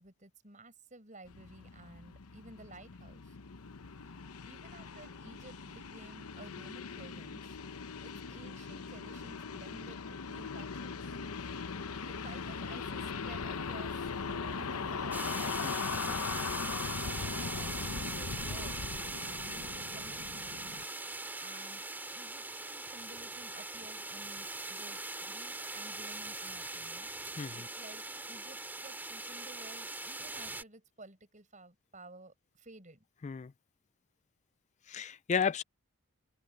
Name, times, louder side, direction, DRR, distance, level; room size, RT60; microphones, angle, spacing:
voice 1, 0.0-3.4 4.4-7.6 8.0-11.1 12.0-15.2 16.1-18.8 19.2-20.5 21.4-21.8 22.1-27.1 27.5-33.0, right 2 dB, 35° right, 6.4 m, -54 dB
sound 1, 1.3-20.8, left 5 dB, 80° left, 0.9 m, -40 dB
sound 2, 15.1-30.6, right 2 dB, 10° right, 2.3 m, -41 dB
voice 2, 15.6-15.9 27.4-27.5 33.2-33.5 34.9-35.6, left 6 dB, 30° left, 0.3 m, -33 dB
open air
head